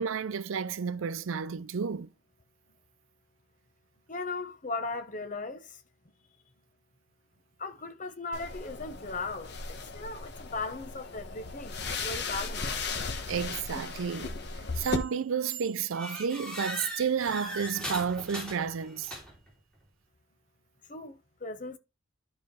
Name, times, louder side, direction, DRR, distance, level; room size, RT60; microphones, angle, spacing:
voice 1, 0.0-2.1 13.3-14.3 14.8-19.1, right 6 dB, 75° right, 0.5 m, -31 dB
voice 2, 4.1-5.8 7.6-12.7 20.9-21.8, left 3 dB, 40° left, 1.0 m, -38 dB
sound 1, 8.3-15.0, left 4 dB, 55° left, 1.1 m, -36 dB
sound 2, 14.8-15.2 15.5-19.5, right 1 dB, 5° left, 3.2 m, -39 dB
11.5 x 4.9 x 3.2 m
head